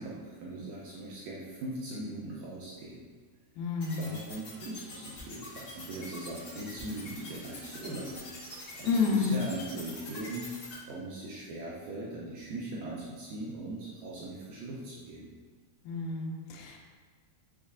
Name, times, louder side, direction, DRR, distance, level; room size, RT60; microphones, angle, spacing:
voice 1, 0.0-3.1 4.0-10.5 10.9-15.3, right 2 dB, 80° right, -6 dB, 2.1 m, -40 dB
voice 2, 3.6-4.1 8.8-9.3 15.9-16.8, left 4 dB, 85° left, 0 dB, 2.5 m, -29 dB
sound 1, 3.8-10.7, left 2 dB, 65° left, 1.3 m, -44 dB
6.1 x 2.4 x 3.6 m, 1.5 s
omnidirectional pair, 4.4 m